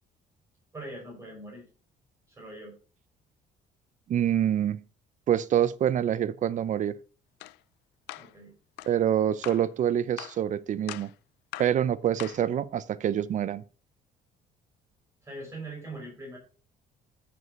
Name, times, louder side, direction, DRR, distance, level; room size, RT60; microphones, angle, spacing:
voice 1, 0.7-1.6 2.3-2.7 8.1-8.5 15.2-16.4, right 2 dB, 15° right, 5.4 m, -42 dB
voice 2, 4.1-4.8 5.3-7.0 8.9-11.1 11.6-13.6, right 10 dB, 45° right, 0.6 m, -26 dB
sound 1, 7.4-7.6 8.1-8.3 8.8-8.9 9.4-9.7 10.2-10.4 10.9-11.1 11.5-11.8 12.2-12.5, left 17 dB, 90° left, 0.4 m, -41 dB
14.0 x 5.3 x 4.0 m
cardioid pair, 110°, 17 cm